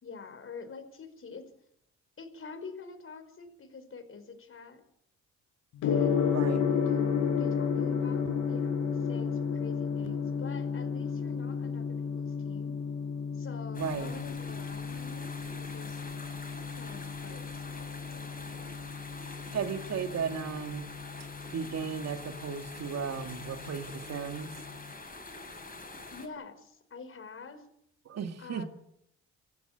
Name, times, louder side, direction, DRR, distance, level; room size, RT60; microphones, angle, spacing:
voice 1, 0.0-1.5 2.2-4.8 5.8-6.3 6.7-12.8 13.3-16.0 16.8-18.7 26.1-27.7 28.4-28.7, left 4 dB, 45° left, 10 dB, 5.1 m, -47 dB
Gong, 5.8-24.8, left 6 dB, 85° left, 4.9 m, -33 dB
voice 2, 6.3-6.7 13.8-14.1 19.5-20.9 21.5-24.6 28.1-28.6, right 7 dB, 60° right, 6 dB, 2.2 m, -35 dB
sound 1, 13.7-26.3, left 3 dB, 30° left, 7.0 m, -45 dB
26.5 x 15.0 x 8.9 m, 0.74 s
cardioid pair, 90°, 30 cm